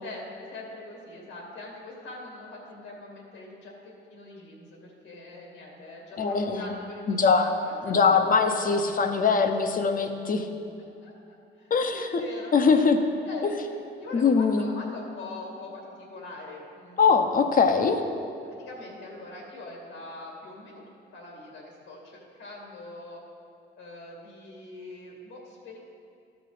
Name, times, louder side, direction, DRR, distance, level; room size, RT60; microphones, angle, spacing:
voice 1, 0.0-8.3 11.0-12.9 13.2-13.7 14.0-17.3 18.4-23.2 23.8-25.8, left 2 dB, 80° left, -1 dB, 2.3 m, -42 dB
voice 2, 6.2-6.7 7.1-7.5 7.9-10.5 11.7-12.2 12.5-13.0 14.1-14.6 17.0-18.0, left 5 dB, 45° left, 6 dB, 0.9 m, -22 dB
12.5 x 6.1 x 5.0 m, 2.5 s
cardioid pair, 90°, 20 cm